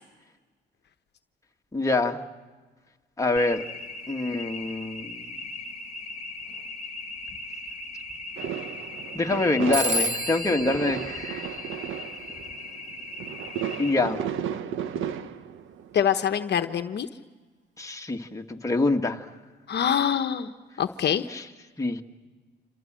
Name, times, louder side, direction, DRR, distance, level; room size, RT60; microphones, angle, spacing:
voice 1, 1.7-2.2 3.2-3.7 4.1-5.2 9.1-11.5 13.8-14.2 17.8-19.3 21.3-21.4 21.8-22.0, left 2 dB, 15° left, 3 dB, 2.0 m, -25 dB
sound 1, 3.4-13.9, left 2 dB, 35° left, 2.3 m, -39 dB
sound 2, 8.4-15.9, right 9 dB, 85° right, 1.3 m, -34 dB
Telephone, 9.7-12.2, right 1 dB, 35° right, 2.5 m, -31 dB
voice 2, 15.9-17.1 19.7-20.5 20.8-21.3, left 8 dB, 60° left, 8 dB, 1.1 m, -24 dB
27.5 x 27.5 x 7.6 m, 1.3 s
cardioid pair, 90°, 20 cm